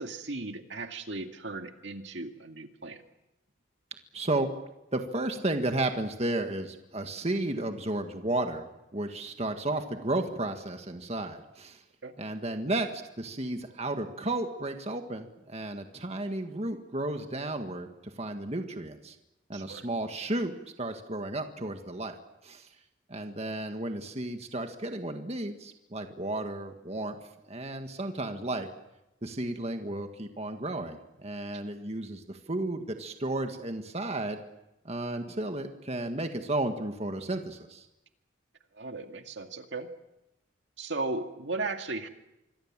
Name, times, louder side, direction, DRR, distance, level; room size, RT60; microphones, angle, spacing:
voice 1, 0.0-3.0 12.0-12.1 19.5-19.9 29.3-29.4 38.7-39.9 40.8-42.1, right 3 dB, 65° right, 5 dB, 2.1 m, -36 dB
voice 2, 4.1-4.5 4.9-11.8 12.2-19.2 19.5-22.2 22.4-22.7 23.1-27.2 27.5-28.7 29.2-34.4 34.9-37.9, right 2 dB, 35° right, 5 dB, 1.8 m, -33 dB
26.0 x 23.0 x 7.5 m, 0.91 s
head